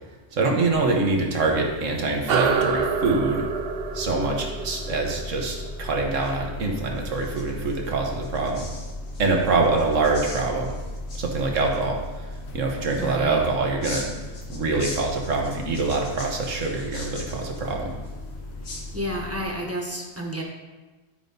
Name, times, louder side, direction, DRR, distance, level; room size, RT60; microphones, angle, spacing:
voice 1, 0.3-3.4 3.9-8.7 9.2-10.7 11.2-12.3 12.5-14.1 14.5-17.9, right 3 dB, 75° right, 1 dB, 1.6 m, -25 dB
sound 1, 0.7-19.4, left 2 dB, 60° left, 1.2 m, -37 dB
sound 2, 2.3-7.1, right 5 dB, 55° right, 0.8 m, -28 dB
sound 3, 6.1-19.4, left 2 dB, 80° left, 1.8 m, -43 dB
voice 2, 13.0-13.4 18.9-20.4, equal, 10° right, 0 dB, 1.1 m, -30 dB
12.0 x 5.3 x 3.9 m, 1.2 s
omnidirectional pair, 1.3 m